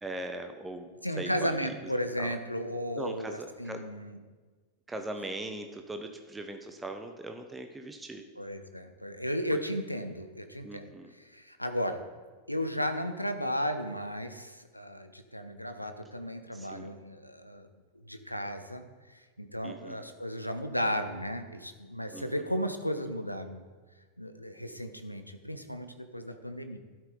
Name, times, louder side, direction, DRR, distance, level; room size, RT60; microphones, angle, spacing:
voice 1, 0.0-0.9 1.2-1.9 2.2-2.4 3.0-3.8 4.9-8.2 9.5-9.6 10.6-11.1 16.5-16.9 19.6-20.0 22.1-22.5, right 2 dB, 10° right, 6 dB, 1.1 m, -40 dB
voice 2, 1.0-4.2 8.4-12.0 12.5-17.7 18.0-23.6 24.2-26.8, equal, 90° left, 8 dB, 1.0 m, -34 dB
12.5 x 12.0 x 4.0 m, 1.4 s
figure-of-eight pair, 90°, 0 cm